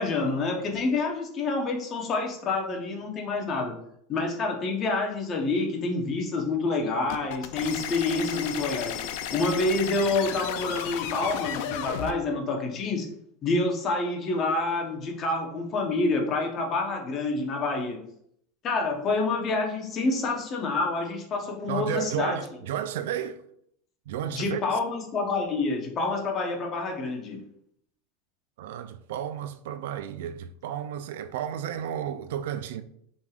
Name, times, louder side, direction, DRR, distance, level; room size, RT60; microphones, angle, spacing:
voice 1, 0.0-3.7 4.1-9.0 9.3-13.1 13.4-18.0 18.6-22.4 24.3-27.4, left 3 dB, 30° left, 0.9 m, -27 dB
sound 1, 7.1-12.1, left 9 dB, 65° left, 0.4 m, -33 dB
voice 2, 21.7-23.4 24.1-24.8 28.6-32.8, right 10 dB, 80° right, 0.4 m, -32 dB
5.2 x 3.3 x 2.4 m
supercardioid pair, 145°, 0 cm